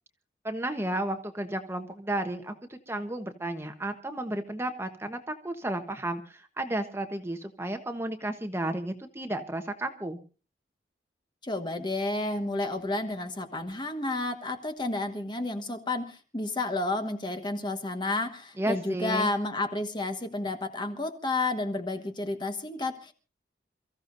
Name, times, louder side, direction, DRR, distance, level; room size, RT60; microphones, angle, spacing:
voice 1, 0.4-10.2 18.6-19.3, right 1 dB, 15° right, 6 dB, 1.1 m, -33 dB
voice 2, 11.4-23.1, left 2 dB, 25° left, 7 dB, 1.3 m, -31 dB
28.5 x 15.0 x 2.6 m, 0.34 s
head